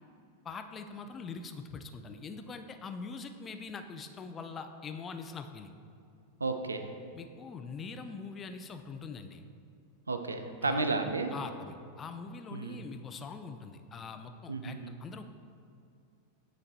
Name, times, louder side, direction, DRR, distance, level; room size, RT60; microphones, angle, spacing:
voice 1, 0.4-5.7 7.1-9.4 10.6-10.8 11.3-15.2, left 5 dB, 25° left, 7 dB, 0.4 m, -43 dB
voice 2, 6.4-6.9 10.1-11.3 12.5-12.8 14.5-14.9, right 3 dB, 75° right, 7 dB, 0.4 m, -32 dB
8.6 x 3.2 x 4.1 m, 2.4 s
figure-of-eight pair, 90°, 0 cm